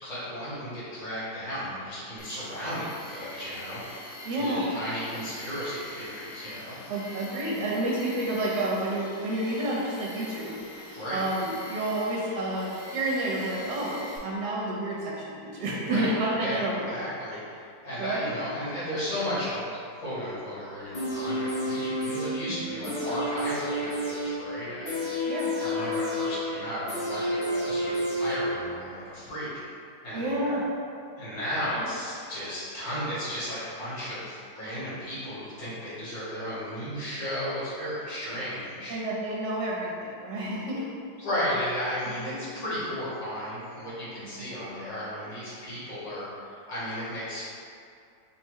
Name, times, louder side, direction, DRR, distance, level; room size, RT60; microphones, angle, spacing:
voice 1, 0.0-6.8 10.9-11.2 15.9-16.1 16.4-25.2 25.6-29.5 30.0-30.6 31.2-39.0 41.2-47.4, equal, 70° left, -10 dB, 2.1 m, -34 dB
Tools, 2.2-14.2, left 1 dB, 90° left, 1.7 m, -44 dB
voice 2, 4.2-4.6 6.9-10.5 11.1-17.0 17.3-17.4 18.0-18.3 22.6-23.0 25.3-25.5 30.1-30.6 31.8-31.9 38.9-40.8 42.2-42.4 44.4-44.5, right 1 dB, 70° right, -4 dB, 1.3 m, -30 dB
sound 1, 20.9-28.9 29.3-29.4, equal, 40° left, 0.8 m, -30 dB
4.2 x 2.3 x 4.6 m, 2.4 s
omnidirectional pair, 2.1 m